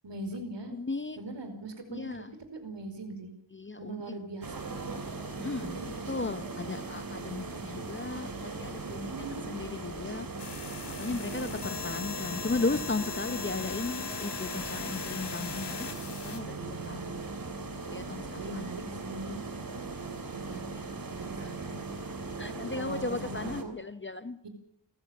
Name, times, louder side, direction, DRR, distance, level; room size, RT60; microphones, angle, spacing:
voice 1, 0.0-0.7 1.2-2.2 2.5-3.3 3.8-5.0 5.6-6.3 8.8-9.5 11.1-11.6 16.5-17.3 18.4-19.4 20.3-20.7 21.1-21.8 22.4-23.7 24.4-24.5, right 2 dB, 70° right, 5.0 m, -41 dB
voice 2, 0.7-1.2 1.9-2.3 3.5-4.1 5.4-5.8 6.1-10.3 10.9-17.1 17.9-18.6 20.7-20.9 21.4-21.5 22.4-24.4, left 3 dB, 25° left, 0.9 m, -36 dB
sound 1, 4.4-23.6, right 3 dB, 50° right, 3.1 m, -39 dB
sound 2, 10.4-16.4, left 7 dB, 65° left, 2.5 m, -39 dB
30.0 x 15.0 x 7.2 m
wide cardioid pair, 100°, 44 cm